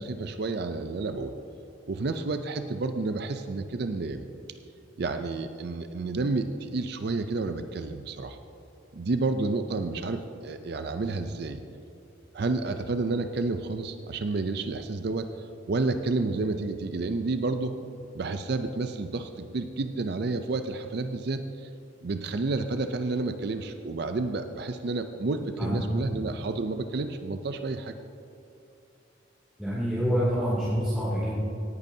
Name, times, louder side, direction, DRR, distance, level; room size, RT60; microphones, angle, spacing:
voice 1, 0.0-1.3 1.9-4.2 5.0-8.4 8.9-11.6 12.3-15.3 15.7-17.7 18.1-21.7 22.0-27.9, right 3 dB, 55° right, 8 dB, 0.5 m, -30 dB
voice 2, 29.6-31.4, equal, 5° right, -11 dB, 2.6 m, -26 dB
17.5 x 10.5 x 2.7 m, 2.7 s
head